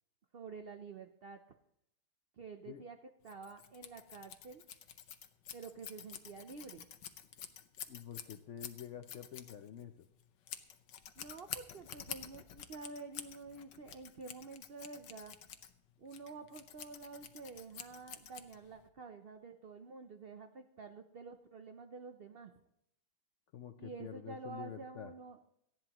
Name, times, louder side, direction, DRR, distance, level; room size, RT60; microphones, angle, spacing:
voice 1, 0.3-1.4 2.4-3.0 3.2-4.6 5.5-6.9 11.2-15.3 16.0-22.5 23.8-25.4, right 4 dB, 90° right, 7 dB, 0.5 m, -49 dB
Scissors, 3.2-18.9, left 9 dB, 85° left, 1.5 m, -49 dB
voice 2, 7.9-10.1 23.5-25.1, left 9 dB, 70° left, 7 dB, 0.7 m, -48 dB
18.0 x 13.0 x 3.0 m, 0.79 s
omnidirectional pair, 1.9 m